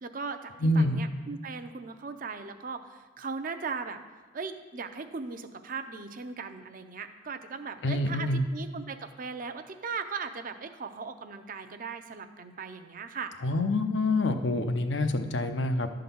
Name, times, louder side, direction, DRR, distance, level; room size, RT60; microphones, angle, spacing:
voice 1, 0.0-4.0 4.3-8.3 8.5-13.3, right 5 dB, 45° right, 8 dB, 0.5 m, -38 dB
voice 2, 0.6-1.0 7.8-8.4 13.4-15.9, left 2 dB, 75° left, 7 dB, 0.7 m, -26 dB
11.0 x 3.8 x 6.9 m, 1.3 s
head